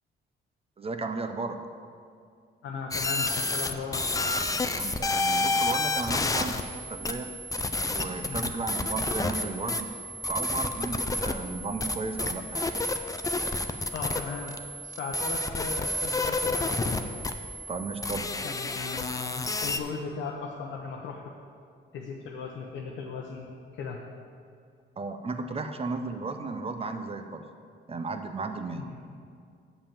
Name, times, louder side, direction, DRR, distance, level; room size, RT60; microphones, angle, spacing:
voice 1, 0.8-1.6 4.6-7.3 7.9-9.9 10.3-12.7 17.7-18.3 25.0-27.4 27.9-28.9, right 3 dB, 30° right, 7 dB, 0.7 m, -34 dB
voice 2, 2.6-4.1 4.4-4.5 8.2-8.5 13.9-14.6 14.8-16.8 18.4-21.3 21.9-24.0 28.8-29.0, left 5 dB, 80° left, -1 dB, 0.8 m, -37 dB
sound 1, 2.9-19.8, left 2 dB, 15° left, 0.5 m, -30 dB
6.9 x 5.5 x 7.3 m, 2.3 s
cardioid pair, 90°, 20 cm